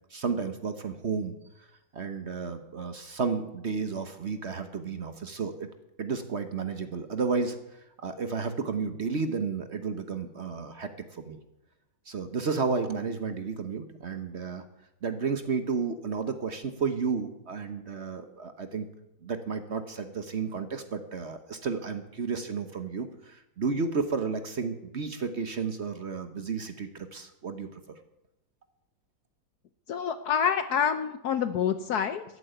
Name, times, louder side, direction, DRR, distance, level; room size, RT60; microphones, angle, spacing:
voice 1, 0.1-1.3 1.9-5.7 6.0-7.6 8.0-11.4 12.1-14.6 15.0-18.9 19.2-27.7, right 5 dB, 45° right, 9 dB, 1.1 m, -32 dB
voice 2, 29.9-32.2, left 7 dB, 65° left, 10 dB, 1.2 m, -27 dB
13.5 x 8.6 x 9.1 m, 0.88 s
omnidirectional pair, 2.0 m